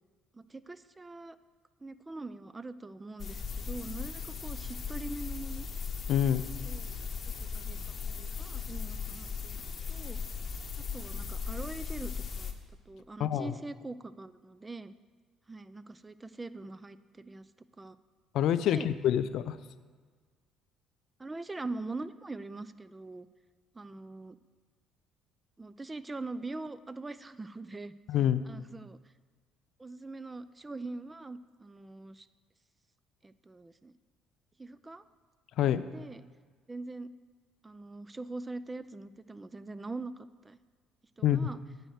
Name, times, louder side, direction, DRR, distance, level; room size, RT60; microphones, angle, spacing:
voice 1, 0.3-1.4 1.8-5.7 6.6-7.0 7.4-10.2 10.8-12.1 12.4-12.5 12.9-14.9 15.5-17.5 17.8-18.0 18.6-18.9 21.2-23.3 23.7-24.4 25.6-27.9 28.4-29.0 29.8-32.3 33.2-33.9 34.6-35.0 35.8-36.3 36.7-37.1 37.6-40.6 41.2-41.6, right 2 dB, 20° right, 15 dB, 0.4 m, -43 dB
sound 1, 3.2-12.5, left 6 dB, 45° left, 0.9 m, -38 dB
voice 2, 6.1-6.4 13.2-13.5 18.3-19.6 28.1-28.4 35.6-35.8 41.2-41.5, left 10 dB, 65° left, 14 dB, 0.3 m, -26 dB
9.0 x 4.4 x 6.3 m, 1.6 s
hypercardioid pair, 60°, 0 cm